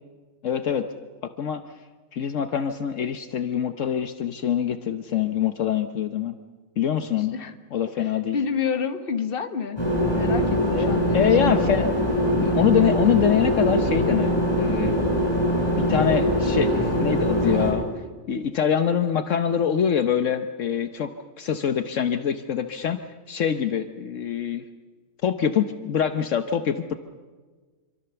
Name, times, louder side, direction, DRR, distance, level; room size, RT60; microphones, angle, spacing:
voice 1, 0.4-0.9 1.4-1.6 2.1-6.4 6.8-7.3 7.7-8.4 10.7-11.9 12.4-14.3 14.6-14.9 15.8-17.8 18.3-21.1 21.4-23.0 23.3-24.6 25.2-26.9, left 8 dB, 70° left, 9 dB, 1.2 m, -24 dB
voice 2, 8.0-9.8 10.1-11.7, left 6 dB, 45° left, 9 dB, 1.4 m, -29 dB
sound 1, 9.8-17.7, equal, 20° left, 7.0 m, -22 dB
26.5 x 24.5 x 7.0 m, 1.4 s
omnidirectional pair, 1.4 m